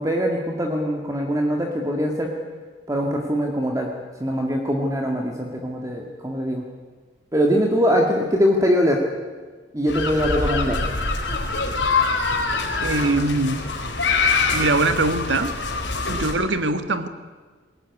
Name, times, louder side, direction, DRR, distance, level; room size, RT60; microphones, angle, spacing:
voice 1, 0.0-2.3 2.9-3.9 4.2-6.6 7.3-9.0 9.7-10.8, equal, 20° right, 1 dB, 2.0 m, -22 dB
sound 1, 9.9-16.3, left 4 dB, 80° left, 4.1 m, -24 dB
voice 2, 12.8-13.7 14.5-15.5 16.1-17.1, right 2 dB, 90° right, 10 dB, 1.6 m, -22 dB
21.5 x 17.5 x 9.7 m, 1.4 s
head